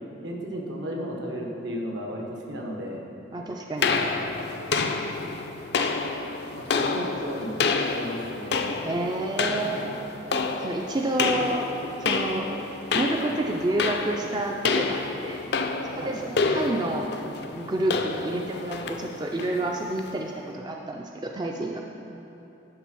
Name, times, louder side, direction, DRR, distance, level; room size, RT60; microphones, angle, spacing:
voice 1, 0.2-3.0 6.6-7.5 7.9-8.7 16.0-16.2, equal, 75° right, 0 dB, 1.2 m, -34 dB
voice 2, 3.3-4.0 6.9-7.1 8.8-10.0 10.6-11.7 12.0-12.5 12.9-15.4 15.9-17.1 17.5-21.8, right 2 dB, 20° right, 1 dB, 0.3 m, -29 dB
sound 1, 3.8-20.2, left 4 dB, 60° left, 0.4 m, -29 dB
11.0 x 3.8 x 6.1 m, 2.9 s
head